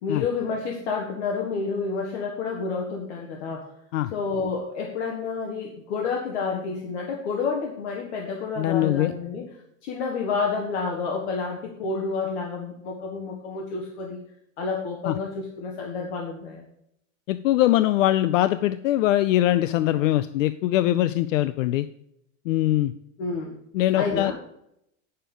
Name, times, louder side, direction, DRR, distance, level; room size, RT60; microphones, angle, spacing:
voice 1, 0.0-3.7 4.1-9.5 9.8-14.2 14.6-16.7 23.2-23.5 23.9-24.3, left 4 dB, 60° left, 0 dB, 1.6 m, -29 dB
voice 2, 8.6-9.1 15.1-15.2 17.3-21.9 22.5-22.9 23.7-24.3, left 14 dB, 75° left, 12 dB, 0.6 m, -22 dB
9.1 x 6.7 x 5.3 m, 0.77 s
supercardioid pair, 175°, 38 cm